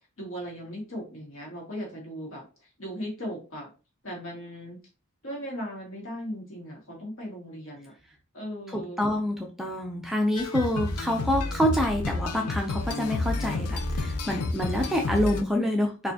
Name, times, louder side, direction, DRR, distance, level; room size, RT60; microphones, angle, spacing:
voice 1, 0.2-3.7 4.0-4.8 5.2-7.9 8.3-9.1, equal, 60° left, -3 dB, 1.8 m, -38 dB
voice 2, 8.7-16.1, equal, ahead, 1 dB, 0.4 m, -27 dB
sound 1, 10.4-15.4, left 3 dB, 85° left, 0.5 m, -30 dB
4.1 x 2.5 x 2.8 m, 0.33 s
head